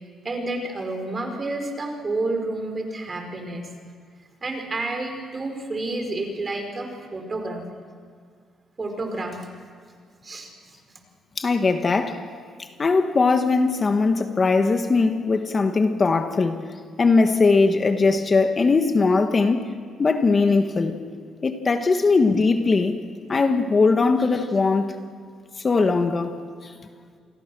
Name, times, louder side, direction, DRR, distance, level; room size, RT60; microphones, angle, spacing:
voice 1, 0.2-3.7 4.4-7.6 8.8-9.5 10.2-11.0, right 2 dB, 35° right, 4 dB, 4.7 m, -30 dB
voice 2, 11.4-12.2 12.8-16.6 17.0-19.7 20.0-21.0 21.4-23.0 23.3-24.9 25.6-26.7, left 4 dB, 35° left, 7 dB, 1.6 m, -20 dB
28.5 x 21.0 x 6.3 m, 2.1 s
cardioid pair, 90°, 0 cm